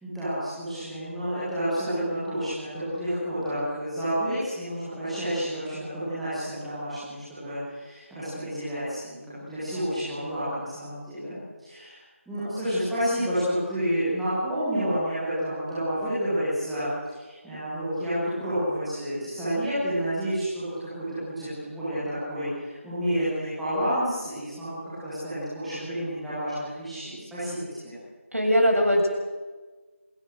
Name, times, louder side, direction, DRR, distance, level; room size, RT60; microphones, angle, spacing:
voice 1, 0.0-12.0 12.3-27.6, equal, ahead, -16 dB, 1.3 m, -30 dB
voice 2, 28.3-29.1, equal, 85° right, 1 dB, 6.9 m, -20 dB
27.5 x 17.5 x 6.5 m, 1.3 s
figure-of-eight pair, 175°, 7 cm